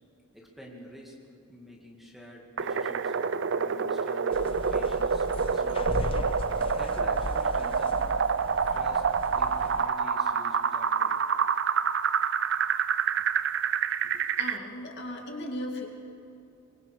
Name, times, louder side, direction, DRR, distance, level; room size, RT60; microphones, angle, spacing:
voice 1, 0.3-1.2 1.5-3.1 3.6-6.2 6.8-8.1 8.7-9.1 9.4-11.2 14.0-14.3, equal, ahead, -2 dB, 2.3 m, -47 dB
sound 1, 2.6-14.6, right 6 dB, 55° right, 0.5 m, -27 dB
sound 2, 4.3-9.9, left 2 dB, 25° left, 0.6 m, -37 dB
voice 2, 14.4-15.9, left 1 dB, 50° left, 1 dB, 2.4 m, -36 dB
23.5 x 22.0 x 5.1 m, 2.8 s
head